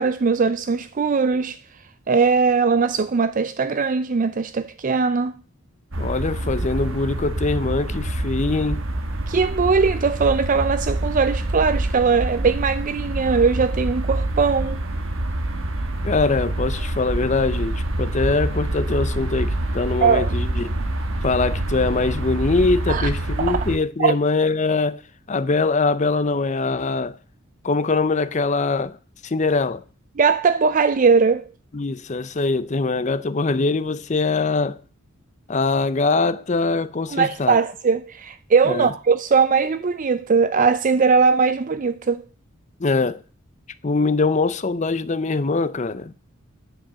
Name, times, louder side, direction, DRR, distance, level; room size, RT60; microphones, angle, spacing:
voice 1, 0.0-1.6 2.1-5.3 9.3-14.8 20.0-20.3 22.9-23.1 23.4-23.6 24.0-24.2 30.2-31.4 37.1-42.2, right 5 dB, 40° right, 0.4 m, -20 dB
sound 1, 5.9-23.8, right 1 dB, 65° right, 1.2 m, -26 dB
voice 2, 6.0-8.8 16.0-20.7 21.2-25.0 25.3-27.2 27.6-29.0 29.2-29.8 31.7-34.8 35.5-37.6 38.7-38.9 42.8-43.2 43.8-46.1, left 3 dB, 35° left, 0.6 m, -22 dB
10.0 x 5.1 x 7.6 m
head